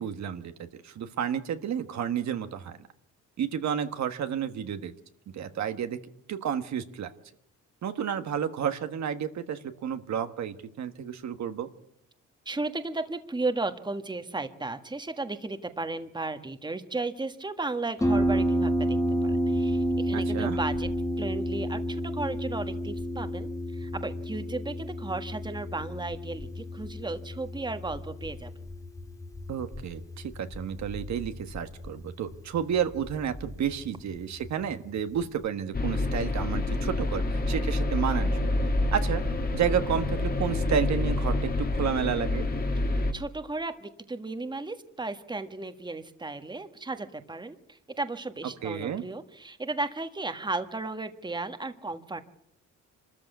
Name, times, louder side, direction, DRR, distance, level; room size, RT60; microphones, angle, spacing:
voice 1, 0.0-2.8 3.4-4.9 5.3-6.0 6.3-7.1 7.8-11.7 20.1-20.6 29.5-38.5 38.9-39.2 39.5-42.5 48.6-49.0, right 8 dB, 65° right, 8 dB, 1.5 m, -31 dB
voice 2, 12.4-28.5 43.1-52.2, right 3 dB, 15° right, 8 dB, 1.6 m, -35 dB
Harp, 18.0-35.5, equal, 10° left, 1.8 m, -31 dB
sound 1, 35.7-43.1, left 2 dB, 30° left, 2.1 m, -27 dB
25.5 x 14.0 x 8.3 m, 0.76 s
cardioid pair, 90°, 30 cm